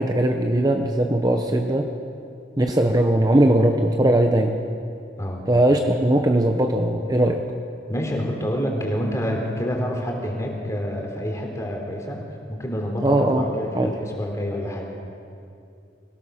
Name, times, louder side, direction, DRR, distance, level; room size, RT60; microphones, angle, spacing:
voice 1, 0.0-1.9 2.6-4.6 5.5-7.4 13.0-13.5 13.7-13.9, right 1 dB, 20° right, 4 dB, 0.9 m, -19 dB
voice 2, 7.9-12.2 12.5-14.9, equal, 20° left, 0 dB, 3.5 m, -27 dB
24.5 x 17.0 x 6.5 m, 2.5 s
head